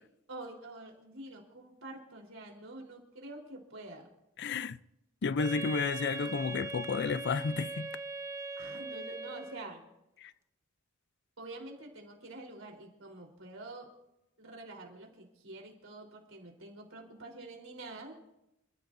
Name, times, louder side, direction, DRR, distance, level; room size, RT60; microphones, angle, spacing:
voice 1, 0.3-4.1 8.6-9.8 11.4-13.9 14.4-18.2, right 2 dB, 80° right, 3.9 m, -47 dB
voice 2, 4.4-4.8 5.2-7.9 10.2-10.3, left 5 dB, 60° left, 0.5 m, -32 dB
Wind instrument woodwind instrument, 5.4-9.8, right 3 dB, 15° right, 0.9 m, -40 dB
28.0 x 14.5 x 2.7 m
head